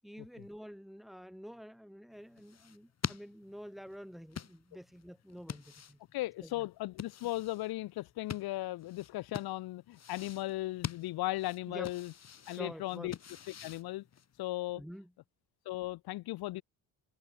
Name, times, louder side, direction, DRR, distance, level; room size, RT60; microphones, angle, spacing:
voice 1, 0.0-6.0 6.4-6.7 11.7-11.9 12.5-13.1 14.7-15.1, equal, ahead, 7.9 m, -48 dB
sound 1, 2.1-14.5, left 7 dB, 40° left, 3.6 m, -46 dB
voice 2, 6.1-12.1 12.5-13.1 13.5-14.0 14.4-14.8 15.6-16.6, left 17 dB, 70° left, 1.4 m, -37 dB
supercardioid pair, 85°, 38 cm